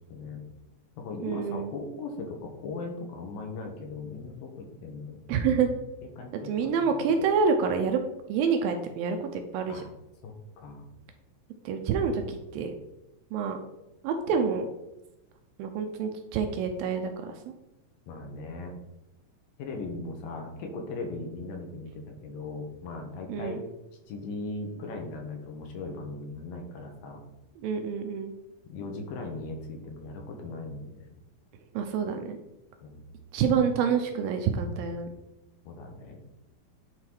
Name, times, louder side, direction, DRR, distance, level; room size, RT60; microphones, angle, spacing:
voice 1, 0.1-0.4 1.0-5.4 6.2-7.3 9.7-9.9 10.2-10.9 14.3-14.4 18.1-18.7 19.6-23.6 24.1-27.2 28.7-31.1 32.8-33.1 35.6-36.2, left 3 dB, 70° left, 3 dB, 2.6 m, -39 dB
voice 2, 1.2-1.7 5.3-5.7 6.4-8.0 8.3-9.8 11.7-12.8 13.3-13.6 14.0-14.7 15.6-17.3 23.3-23.6 27.6-28.3 31.7-32.4 33.3-35.1, right 6 dB, 80° right, 5 dB, 2.3 m, -27 dB
9.6 x 3.8 x 4.6 m, 0.92 s
omnidirectional pair, 4.5 m